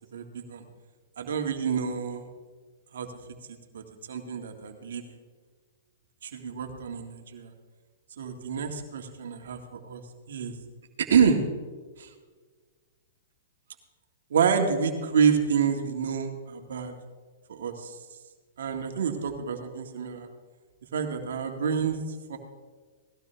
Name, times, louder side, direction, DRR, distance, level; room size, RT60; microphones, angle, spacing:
voice 1, 0.1-0.6 1.2-2.3 2.9-3.1 3.7-3.8 4.1-5.0 6.2-7.5 8.2-10.0 10.3-10.5 11.0-11.4 12.0-12.1 14.3-16.9 17.5-18.0 18.6-20.3 20.9-22.0 22.3-22.4, right 6 dB, 75° right, 4 dB, 1.9 m, -27 dB
18.5 x 15.0 x 3.4 m, 1.5 s
hypercardioid pair, 135°, 0 cm